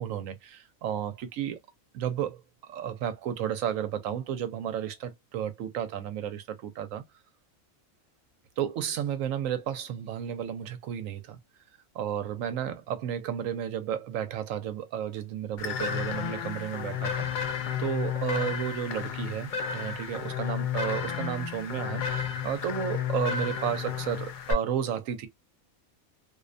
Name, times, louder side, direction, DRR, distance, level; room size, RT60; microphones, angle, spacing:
voice 1, 0.0-1.6 1.9-2.4 2.7-7.0 8.6-11.4 11.9-17.5 17.8-25.3, right 9 dB, 75° right, 1.0 m, -32 dB
sound 1, 15.6-24.5, left 7 dB, 75° left, 0.4 m, -32 dB
2.6 x 2.1 x 2.4 m
omnidirectional pair, 1.4 m